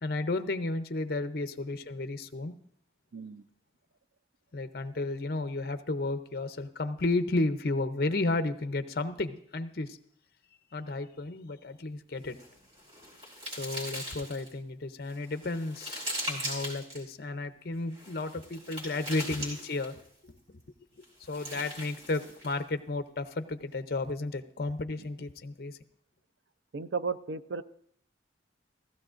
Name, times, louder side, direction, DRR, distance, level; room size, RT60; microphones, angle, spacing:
voice 1, 0.0-2.5 4.5-10.0 10.7-12.4 13.6-20.0 21.3-25.8, left 2 dB, 55° left, 10 dB, 0.6 m, -33 dB
voice 2, 3.1-3.4 26.7-27.6, right 5 dB, 75° right, 11 dB, 0.5 m, -34 dB
sound 1, 12.2-14.5 15.1-17.0 17.9-20.1 21.0-22.6, equal, 35° right, 4.2 m, -40 dB
15.5 x 15.0 x 2.5 m, 0.66 s
head